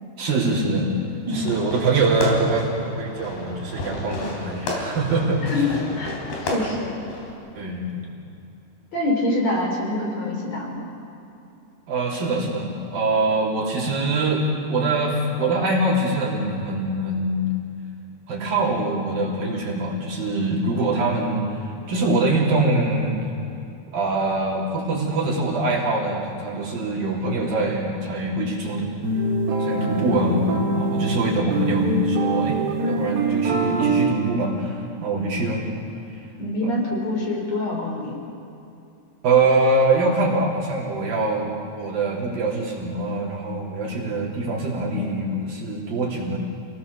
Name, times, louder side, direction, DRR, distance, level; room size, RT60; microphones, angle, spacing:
voice 1, 0.2-0.9 1.3-5.7 7.5-8.0 11.9-17.5 18.3-23.2 23.9-28.9 29.6-30.4 30.7-35.6 36.6-36.7 39.2-46.4, right 2 dB, 60° right, -4 dB, 5.0 m, -23 dB
Fireworks, 1.3-7.3, left 1 dB, 70° left, 5.5 m, -32 dB
voice 2, 5.4-7.1 8.9-10.9 30.0-30.5 36.4-38.2, left 2 dB, 45° left, -1 dB, 4.5 m, -26 dB
sound 1, 29.0-34.1, right 3 dB, 80° right, 3.8 m, -24 dB
28.0 x 19.0 x 6.8 m, 2.7 s
omnidirectional pair, 4.7 m